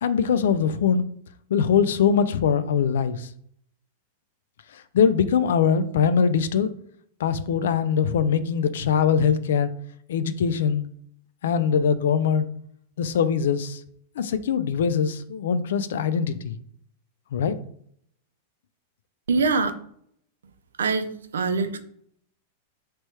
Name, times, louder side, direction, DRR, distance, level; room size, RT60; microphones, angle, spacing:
voice 1, 0.0-1.0 1.5-3.3 4.9-6.7 7.2-9.7 10.1-10.9 11.4-12.5 13.0-13.8 14.2-16.6 17.3-17.6, left 7 dB, 70° left, 12 dB, 0.3 m, -22 dB
voice 2, 19.3-19.7 20.8-21.8, right 4 dB, 80° right, 9 dB, 0.4 m, -23 dB
3.2 x 2.9 x 3.1 m, 0.65 s
hypercardioid pair, 100°, 0 cm